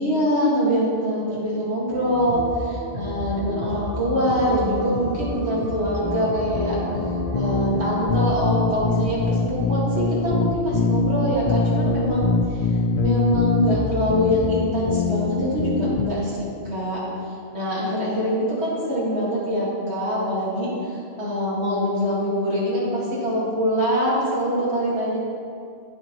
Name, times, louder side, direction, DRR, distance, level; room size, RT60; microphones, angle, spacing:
voice 1, 0.0-6.8 7.3-12.6 13.0-16.4 16.7-17.0 17.5-20.7 21.2-25.2, equal, 85° right, -7 dB, 2.2 m, -24 dB
sound 1, 1.9-7.6, right 1 dB, 60° right, 1.2 m, -32 dB
sound 2, 6.0-16.0, left 4 dB, 50° left, 0.5 m, -23 dB
8.8 x 7.5 x 3.0 m, 2.4 s
omnidirectional pair, 1.1 m